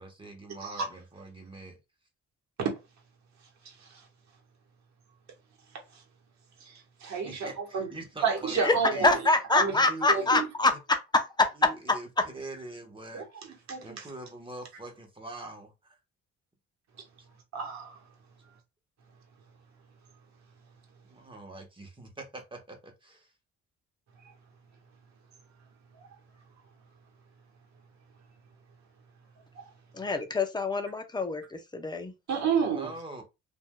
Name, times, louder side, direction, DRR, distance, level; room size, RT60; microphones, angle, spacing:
voice 1, 0.0-1.8 7.2-9.2 9.7-10.4 11.6-13.5 13.8-16.0 21.1-23.3 32.7-33.2, right 2 dB, 15° right, 1.1 m, -43 dB
voice 2, 6.6-7.9 8.2-9.2 9.5-9.7 10.1-10.5 13.1-13.2 13.7-14.0 17.5-18.0 29.6-29.7 32.3-32.9, right 6 dB, 65° right, 1.3 m, -30 dB
voice 3, 8.5-10.7 11.1-11.5 29.9-32.1, left 3 dB, 15° left, 0.6 m, -25 dB
3.4 x 2.6 x 2.2 m
cardioid pair, 90°, 30 cm